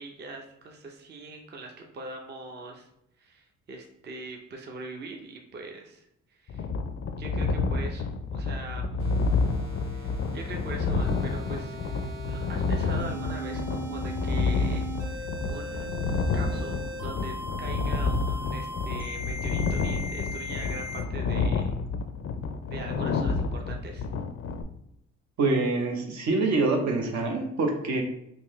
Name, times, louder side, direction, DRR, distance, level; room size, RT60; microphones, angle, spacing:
voice 1, 0.0-2.9 3.2-6.7 7.1-8.9 9.9-14.9 15.1-15.9 16.3-21.7 22.7-24.1, right 3 dB, 35° right, 2 dB, 0.6 m, -42 dB
sound 1, 6.5-24.6, left 4 dB, 45° left, 0.4 m, -29 dB
sound 2, 9.0-21.0, equal, 90° right, 1.2 m, -38 dB
voice 2, 25.4-28.0, right 3 dB, 65° right, 2 dB, 0.8 m, -25 dB
3.6 x 2.7 x 3.0 m, 0.79 s
cardioid pair, 90°, 30 cm